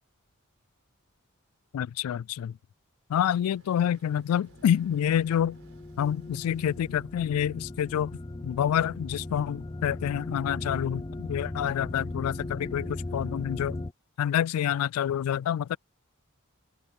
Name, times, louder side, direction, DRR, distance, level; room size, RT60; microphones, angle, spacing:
voice 1, 1.7-2.6 3.1-5.6 6.0-8.2 8.4-13.8 14.2-15.8, left 9 dB, 90° left, 0.3 m, -27 dB
sound 1, 3.2-7.7, right 1 dB, 65° right, 5.6 m, -60 dB
sound 2, 4.5-13.9, left 2 dB, 20° left, 0.5 m, -38 dB
open air
head